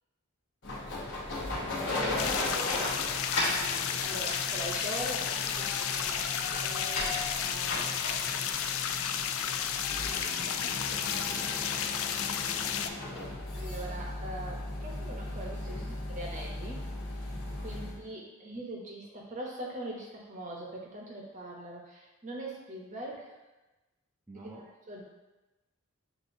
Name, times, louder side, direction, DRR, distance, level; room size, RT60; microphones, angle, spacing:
sound 1, 0.6-18.0, left 2 dB, 55° left, 1.0 m, -38 dB
voice 1, 1.9-3.3 4.0-7.2 13.5-16.8 17.2-23.3 24.9-25.0, right 1 dB, 35° right, -2 dB, 0.8 m, -42 dB
sound 2, 2.0-9.6, left 2 dB, 90° left, 1.4 m, -38 dB
sound 3, 2.2-12.9, left 8 dB, 70° left, 0.3 m, -32 dB
voice 2, 9.9-12.3 15.6-16.0 17.5-18.1 24.3-24.7, right 2 dB, 10° right, -6 dB, 0.3 m, -50 dB
7.5 x 2.7 x 2.6 m, 1.1 s
head